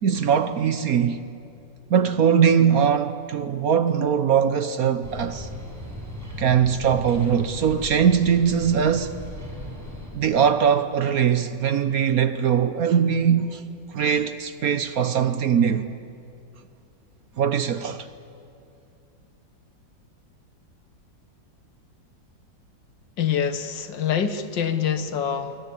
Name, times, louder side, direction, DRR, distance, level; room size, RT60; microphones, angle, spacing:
voice 1, 0.0-1.3 1.9-5.5 6.4-9.1 10.1-13.6 13.9-15.8 17.4-18.1, right 7 dB, 60° right, 1.1 m, -21 dB
sound 1, 5.0-10.1, equal, 10° right, 6.5 m, -37 dB
voice 2, 23.2-25.6, left 8 dB, 70° left, 1.9 m, -25 dB
26.5 x 23.5 x 8.5 m
omnidirectional pair, 2.0 m